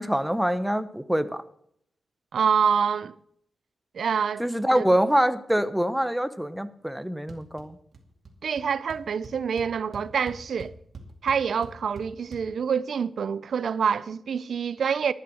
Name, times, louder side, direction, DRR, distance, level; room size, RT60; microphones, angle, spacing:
voice 1, 0.0-1.4 4.4-7.8, equal, 5° right, 0.9 m, -25 dB
voice 2, 2.3-3.1 3.9-4.4 4.8-4.9 8.4-10.7 11.2-15.1, right 7 dB, 75° right, 0.4 m, -26 dB
sound 1, 7.3-7.7 7.9-8.3 8.6-8.7 8.9-12.4, right 3 dB, 55° right, 2.3 m, -44 dB
12.0 x 9.1 x 6.3 m
cardioid pair, 90°, 0 cm